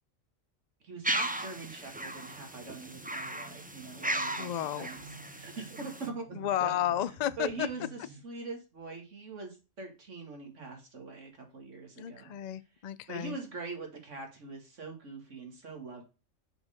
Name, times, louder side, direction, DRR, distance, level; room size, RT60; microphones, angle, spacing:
voice 1, 0.8-4.5 4.8-5.0 5.3-6.3 6.6-6.7 7.4-12.3 13.1-16.0, right 4 dB, 65° right, 2.3 m, -43 dB
sound 1, 1.0-6.1, right 1 dB, 10° right, 0.4 m, -36 dB
sound 2, 2.1-8.2, right 3 dB, 85° right, 1.4 m, -53 dB
voice 2, 4.4-4.9 6.3-7.7 12.0-13.4, left 11 dB, 75° left, 0.4 m, -32 dB
6.5 x 4.5 x 5.0 m
omnidirectional pair, 1.4 m